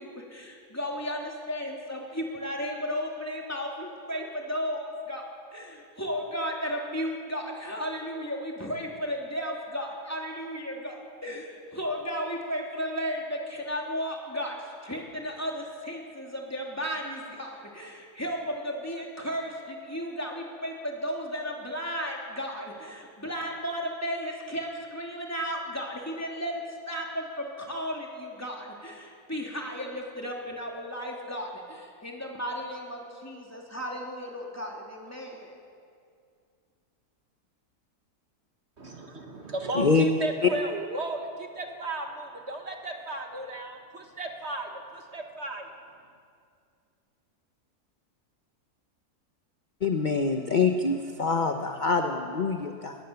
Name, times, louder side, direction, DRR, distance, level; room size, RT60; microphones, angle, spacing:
voice 1, 0.0-35.5, equal, 10° left, -1 dB, 3.1 m, -34 dB
voice 2, 38.8-45.7, right 2 dB, 45° right, 3 dB, 1.6 m, -35 dB
voice 3, 49.8-53.0, left 4 dB, 35° left, 5 dB, 1.0 m, -25 dB
21.0 x 19.0 x 7.0 m, 2.3 s
omnidirectional pair, 1.7 m